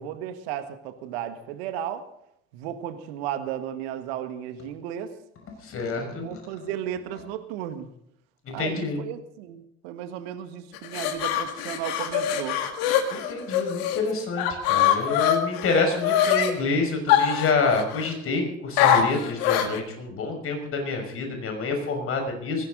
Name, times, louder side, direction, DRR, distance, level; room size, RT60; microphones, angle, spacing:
voice 1, 0.0-2.1 2.5-5.2 6.0-7.9 8.5-12.6, right 10 dB, 65° right, 9 dB, 1.7 m, -34 dB
voice 2, 5.6-6.4 8.5-9.0 13.1-22.6, left 3 dB, 40° left, 4 dB, 5.7 m, -27 dB
sound 1, 10.7-14.0 14.4-16.5 17.1-18.1 18.8-19.8, left 10 dB, 60° left, 2.1 m, -23 dB
19.5 x 17.0 x 3.9 m, 0.75 s
figure-of-eight pair, 65°, 33 cm